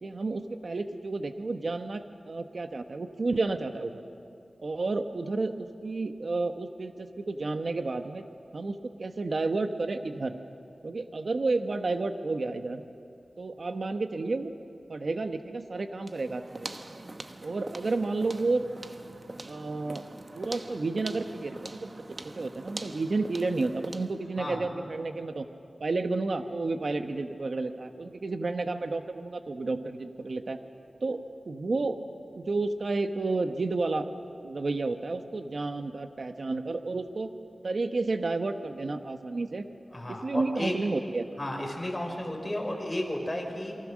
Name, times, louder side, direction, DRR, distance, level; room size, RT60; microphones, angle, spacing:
voice 1, 0.0-4.0 4.6-8.2 8.5-10.4 10.8-12.8 13.4-14.5 14.9-16.7 17.4-18.7 19.5-20.0 20.3-21.9 22.2-25.5 25.8-30.6 31.0-31.9 32.3-34.0 34.4-37.3 37.6-39.6 40.1-41.3, right 3 dB, 65° right, 7 dB, 1.1 m, -31 dB
sound 1, 16.0-24.2, right 2 dB, 40° right, 1.1 m, -43 dB
voice 2, 39.9-40.7 41.4-43.8, left 1 dB, 20° left, 1 dB, 5.0 m, -33 dB
28.0 x 23.5 x 6.3 m, 2.5 s
wide cardioid pair, 75°, 0 cm